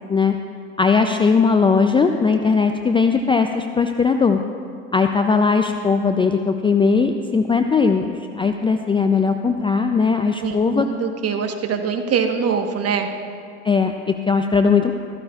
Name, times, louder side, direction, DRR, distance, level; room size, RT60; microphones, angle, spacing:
voice 1, 0.8-4.4 4.9-10.9 13.6-14.9, left 5 dB, 15° left, 6 dB, 0.4 m, -18 dB
voice 2, 10.4-13.1, right 6 dB, 40° right, 5 dB, 1.2 m, -23 dB
15.0 x 14.5 x 2.4 m, 2.3 s
hypercardioid pair, 85°, 39 cm